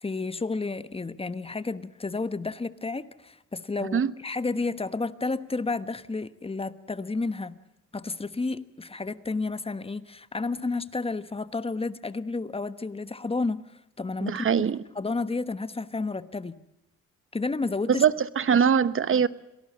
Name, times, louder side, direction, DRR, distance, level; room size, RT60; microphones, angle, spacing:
voice 1, 0.0-7.6 7.9-13.6 14.0-14.4 14.9-16.5 17.3-18.0, left 3 dB, 20° left, 13 dB, 1.2 m, -31 dB
voice 2, 14.2-14.8 17.9-19.3, right 7 dB, 45° right, 15 dB, 1.1 m, -22 dB
26.5 x 18.0 x 7.5 m, 0.90 s
cardioid pair, 90°, 30 cm